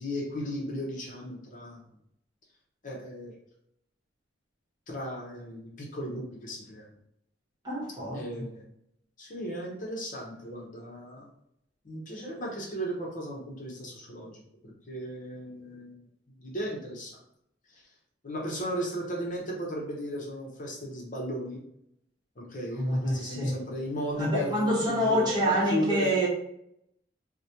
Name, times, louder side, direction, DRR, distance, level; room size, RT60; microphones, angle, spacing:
voice 1, 0.0-1.8 2.8-3.3 4.9-6.9 8.1-8.6 9.2-11.3 11.8-16.0 16.3-17.2 17.7-17.8 18.2-21.6 22.4-26.1, equal, 40° left, -2 dB, 0.8 m, -36 dB
voice 2, 7.6-8.4 22.8-23.5 24.2-26.3, equal, 20° right, -5 dB, 1.1 m, -27 dB
4.8 x 2.2 x 2.8 m, 0.75 s
head